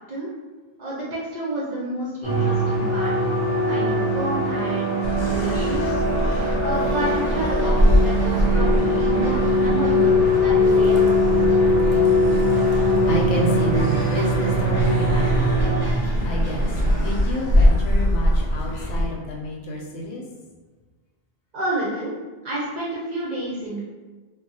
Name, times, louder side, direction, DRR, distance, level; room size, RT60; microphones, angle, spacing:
voice 1, 0.8-3.3 3.6-6.0 6.6-10.9 11.3-11.4 11.9-12.2 21.5-22.1 22.4-23.8, right 1 dB, 55° right, -6 dB, 0.5 m, -30 dB
sound 1, 2.2-15.8, left 1 dB, 25° left, 0.8 m, -21 dB
sound 2, 5.0-19.1, equal, 60° left, 0.5 m, -23 dB
sound 3, 7.2-17.2, equal, 15° right, 0.6 m, -34 dB
voice 2, 12.7-15.8 16.2-16.7 16.9-20.2, left 1 dB, 90° left, -1 dB, 0.9 m, -29 dB
2.5 x 2.0 x 2.7 m, 1.3 s
omnidirectional pair, 1.2 m